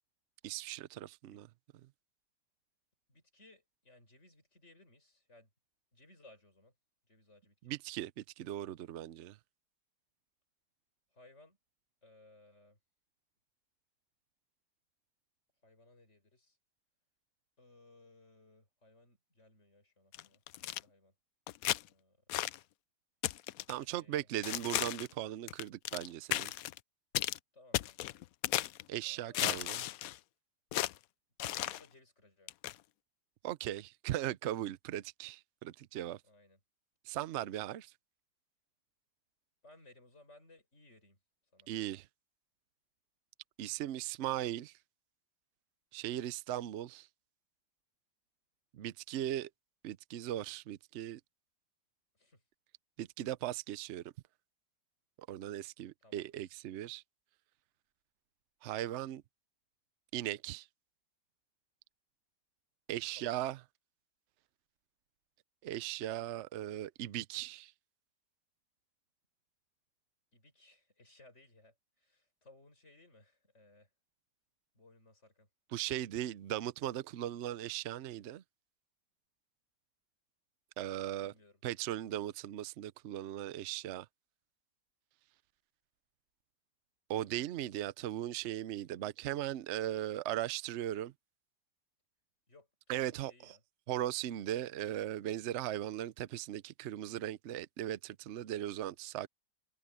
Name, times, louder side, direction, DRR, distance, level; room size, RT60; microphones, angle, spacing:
voice 1, 0.4-1.5 7.6-9.4 23.7-26.5 28.9-29.9 33.4-36.2 37.0-37.9 41.7-42.1 43.6-44.8 45.9-47.1 48.7-49.5 49.8-51.2 53.0-54.0 55.3-57.0 58.6-59.2 60.1-60.7 62.9-63.6 65.6-67.7 75.7-78.4 80.8-81.3 81.6-84.1 87.1-91.1 92.9-93.6 93.9-99.3, right 13 dB, 85° right, 0.6 m, -38 dB
voice 2, 3.1-5.5 5.9-6.7 7.1-7.7 11.1-11.6 12.0-12.8 15.6-16.6 17.6-21.1 21.7-22.2 23.9-24.5 27.5-28.2 29.0-29.6 31.4-32.5 36.2-36.6 39.6-41.2 41.5-41.7 52.1-52.4 56.0-56.4 63.2-63.4 70.3-73.9 74.7-75.5 81.1-81.6 92.5-93.6, left 2 dB, 40° left, 6.7 m, -62 dB
sound 1, 20.1-20.8 21.5-21.8 22.3-22.6 23.2-23.8 24.4-25.1 25.5-26.1 26.3-26.8 27.1-27.4 27.7-28.8 29.3-30.2 30.7-30.9 31.4-31.8 32.5-32.7, left 14 dB, 75° left, 0.8 m, -35 dB
omnidirectional pair, 1.9 m